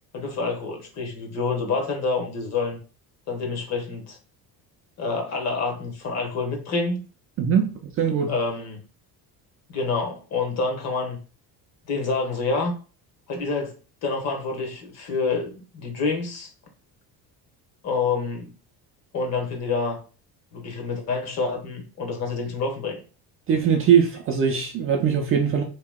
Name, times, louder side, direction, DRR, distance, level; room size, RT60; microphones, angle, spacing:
voice 1, 0.1-2.8 3.3-4.2 5.0-7.0 8.3-8.8 9.7-11.2 11.9-12.7 13.3-13.8 14.0-16.5 17.8-18.5 19.1-20.0 20.5-23.0, left 4 dB, 40° left, 1.0 m, -27 dB
voice 2, 7.4-8.3 23.5-25.6, right 7 dB, 35° right, 0.4 m, -21 dB
2.9 x 2.8 x 3.5 m
cardioid pair, 165°, 40 cm